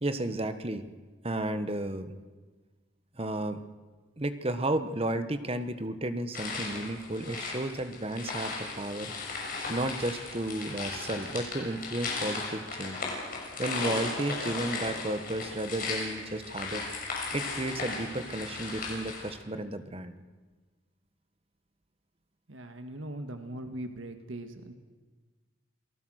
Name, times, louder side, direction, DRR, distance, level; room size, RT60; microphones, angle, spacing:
voice 1, 0.0-0.8 1.2-2.1 3.2-3.6 4.2-9.1 9.7-13.0 13.6-16.8 17.3-20.1, right 1 dB, 30° right, 10 dB, 1.2 m, -33 dB
sound 1, 6.3-19.3, left 3 dB, 45° left, 6.7 m, -36 dB
voice 2, 22.5-24.7, right 1 dB, 80° right, 7 dB, 1.8 m, -40 dB
28.0 x 19.0 x 6.4 m, 1.3 s
head